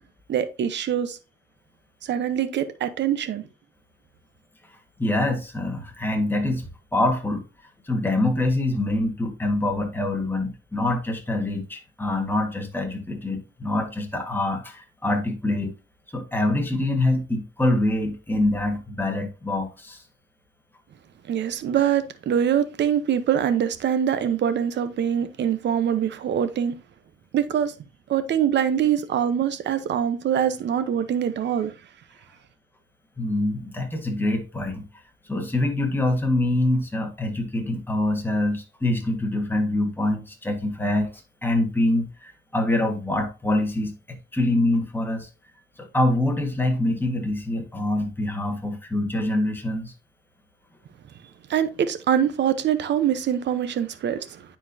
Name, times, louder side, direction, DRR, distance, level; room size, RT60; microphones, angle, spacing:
voice 1, 0.3-1.2 2.0-3.5 21.3-26.8 27.3-27.7 28.1-31.7 51.5-54.4, right 9 dB, 60° right, 0.9 m, -24 dB
voice 2, 5.0-7.4 7.9-15.7 16.1-20.0 33.2-34.9 35.3-41.1 41.4-45.3 45.8-49.9, left 1 dB, 10° left, 1.7 m, -25 dB
9.6 x 4.4 x 2.8 m
cardioid pair, 90°, 20 cm